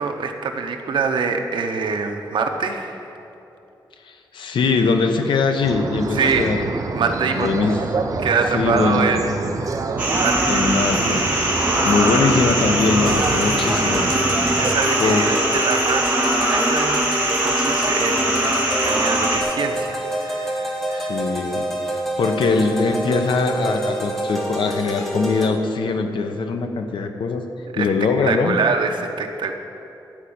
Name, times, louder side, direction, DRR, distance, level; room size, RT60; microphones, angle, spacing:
voice 1, 0.0-3.0 6.1-6.4 6.9-7.5 8.2-9.5 10.0-10.6 14.6-17.0 17.4-21.2 27.7-27.9 28.2-29.5, right 5 dB, 90° right, 5 dB, 0.9 m, -24 dB
voice 2, 4.1-6.6 7.4-7.8 8.5-9.1 10.5-11.2 11.8-14.1 15.0-15.2 20.9-21.7 21.9-27.4 27.8-28.6, left 4 dB, 85° left, 5 dB, 0.9 m, -21 dB
sound 1, 5.6-14.7, right 4 dB, 45° right, 0.6 m, -27 dB
sound 2, 10.0-19.4, right 1 dB, 20° right, 2.3 m, -21 dB
sound 3, 13.1-25.5, equal, 5° left, 1.1 m, -27 dB
12.0 x 5.2 x 8.7 m, 2.8 s
wide cardioid pair, 170°, 8 cm